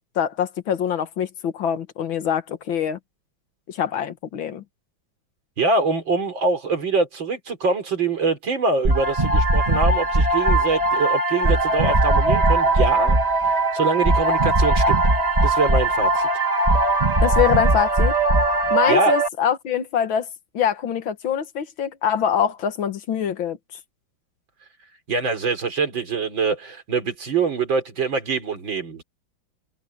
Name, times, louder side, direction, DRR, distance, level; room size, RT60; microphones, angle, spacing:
voice 1, 0.2-3.0 3.7-4.6 17.2-18.2 18.7-20.3 20.5-23.6, left 8 dB, 75° left, 2.1 m, -24 dB
voice 2, 5.6-13.2 13.5-15.0 15.4-16.3 18.9-19.2 25.1-29.0, right 4 dB, 70° right, 4.3 m, -24 dB
sound 1, 8.8-19.3, right 2 dB, 20° right, 2.1 m, -19 dB
omnidirectional pair, 2.2 m